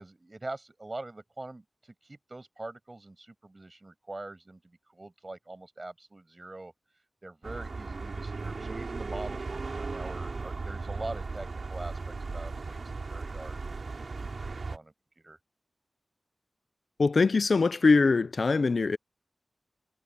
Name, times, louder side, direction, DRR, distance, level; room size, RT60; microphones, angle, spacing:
voice 1, 0.0-6.7 7.2-13.6 14.4-14.9 15.2-15.4, right 2 dB, 30° right, 7.3 m, -43 dB
sound 1, 7.4-14.8, right 3 dB, 60° right, 5.2 m, -36 dB
voice 2, 17.0-19.0, left 4 dB, 60° left, 0.5 m, -22 dB
wide cardioid pair, 110°, 0 cm